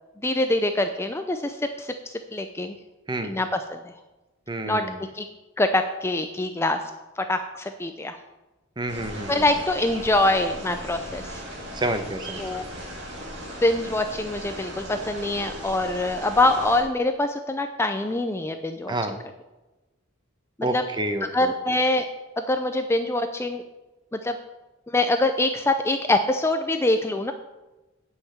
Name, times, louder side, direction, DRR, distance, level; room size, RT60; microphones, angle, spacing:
voice 1, 0.2-1.9 2.3-2.8 3.2-3.8 4.6-4.8 5.1-5.3 5.6-6.8 7.2-8.2 9.3-11.4 12.4-12.6 13.6-18.9 20.7-20.8 21.3-22.1 22.4-23.6 24.1-24.4 24.9-27.3, left 2 dB, 15° left, 7 dB, 0.5 m, -24 dB
voice 2, 3.1-3.4 4.5-5.0 8.8-9.4 11.7-12.4 18.9-19.2 20.6-21.5, right 1 dB, 20° right, 7 dB, 0.9 m, -29 dB
sound 1, 8.9-16.8, equal, 60° right, 2.7 m, -37 dB
9.8 x 5.8 x 7.2 m, 1.1 s
head